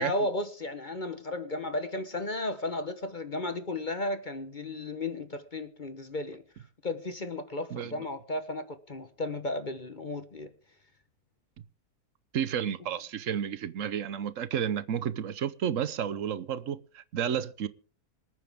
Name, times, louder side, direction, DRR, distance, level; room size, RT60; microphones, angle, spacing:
voice 1, 0.0-6.4 6.8-10.5, left 2 dB, 35° left, 1.1 m, -34 dB
voice 2, 7.7-8.1 12.3-17.7, right 8 dB, 60° right, 1.1 m, -31 dB
26.0 x 9.3 x 3.6 m
omnidirectional pair, 1.6 m